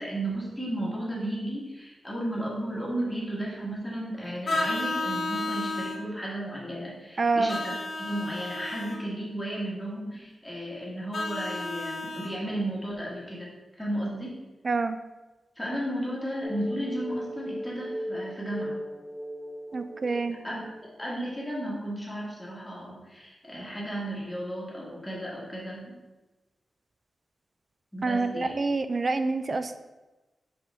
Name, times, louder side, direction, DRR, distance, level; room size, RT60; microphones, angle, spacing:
voice 1, 0.0-13.5 13.8-14.4 15.6-18.8 20.4-26.0 27.9-28.5, right 1 dB, 5° left, -5 dB, 1.5 m, -34 dB
Vehicle horn car horn honking, 4.4-6.0 7.5-9.0 11.1-12.3, left 2 dB, 55° left, 1.1 m, -32 dB
voice 2, 7.2-7.6 14.6-15.0 19.7-20.4 28.0-29.8, right 3 dB, 35° right, 10 dB, 0.3 m, -27 dB
sound 1, 16.4-21.1, equal, 20° left, 0.6 m, -37 dB
5.2 x 5.2 x 3.4 m, 1.1 s
wide cardioid pair, 175°, 0 cm